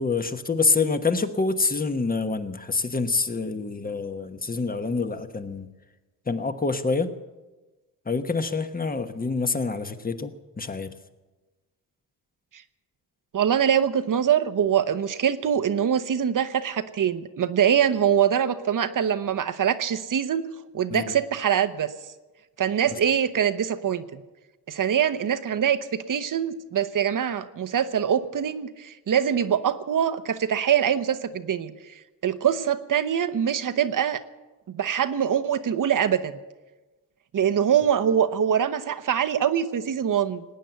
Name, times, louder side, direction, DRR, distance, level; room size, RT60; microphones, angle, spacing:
voice 1, 0.0-5.7 6.2-7.1 8.0-10.3 10.6-10.9 20.9-21.1 22.9-23.0, left 4 dB, 20° left, 9 dB, 1.2 m, -26 dB
voice 2, 13.3-20.5 20.7-21.9 22.6-24.2 24.7-25.8 26.1-31.7 32.2-34.2 34.7-36.4 37.3-40.4, right 8 dB, 50° right, 11 dB, 1.0 m, -23 dB
19.5 x 9.2 x 8.1 m, 1.2 s
cardioid pair, 95°, 40 cm